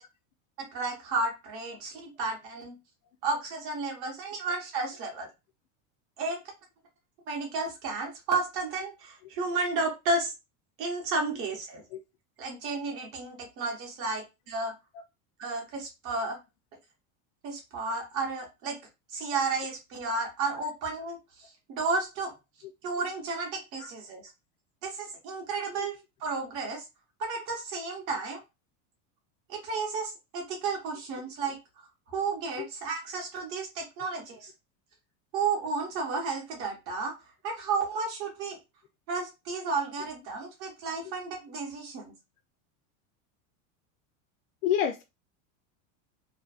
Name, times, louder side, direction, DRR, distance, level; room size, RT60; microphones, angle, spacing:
voice 1, 0.6-2.8 3.2-5.3 6.2-6.4 7.3-10.3 10.8-11.8 12.4-14.7 15.4-16.4 17.4-18.8 19.1-22.3 22.8-24.3 24.8-26.8 27.2-28.4 29.5-31.6 32.1-34.5 35.3-37.1 37.4-38.6 39.1-42.1, right 3 dB, 35° right, 0.7 m, -32 dB
voice 2, 44.6-45.0, left 9 dB, 75° left, 0.5 m, -27 dB
2.5 x 2.1 x 2.3 m
supercardioid pair, 180°, 40 cm